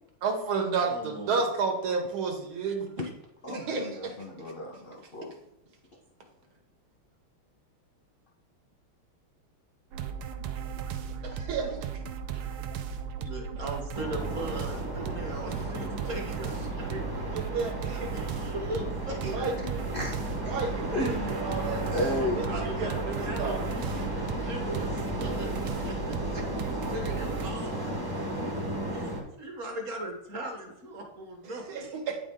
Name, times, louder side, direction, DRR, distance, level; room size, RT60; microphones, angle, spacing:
voice 1, 0.2-3.1 3.5-4.2 11.2-11.9 17.3-18.2 19.3-19.8 20.4-22.4 22.8-23.6 31.5-32.2, right 4 dB, 70° right, 3 dB, 1.9 m, -32 dB
voice 2, 0.9-1.4 13.1-17.1 18.1-19.6 22.1-27.7 28.8-31.9, right 1 dB, 40° right, 2 dB, 1.4 m, -39 dB
voice 3, 3.4-5.3 19.2-19.3 19.9-20.2 20.9-21.5 21.8-22.4, left 1 dB, 40° left, -2 dB, 0.8 m, -33 dB
sound 1, 9.9-27.5, right 7 dB, 90° right, 1.5 m, -36 dB
sound 2, 13.9-29.2, equal, 15° right, 0.7 m, -34 dB
8.9 x 5.0 x 3.7 m, 0.86 s
omnidirectional pair, 2.4 m